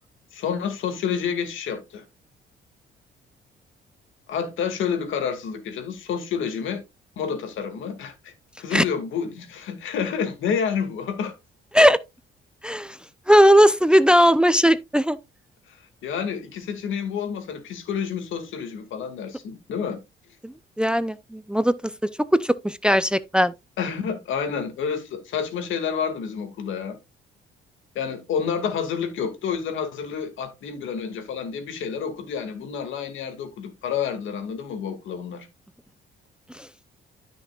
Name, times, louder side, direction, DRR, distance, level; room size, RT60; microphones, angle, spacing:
voice 1, 0.3-2.0 4.3-6.8 7.2-11.3 15.7-20.0 23.8-27.0 27.9-35.5, left 7 dB, 80° left, 2.3 m, -29 dB
voice 2, 12.6-13.0 13.3-15.2 20.4-21.9 22.3-23.5 36.5-36.7, equal, 5° right, 0.6 m, -18 dB
13.0 x 6.1 x 2.4 m
cardioid pair, 90°, 20 cm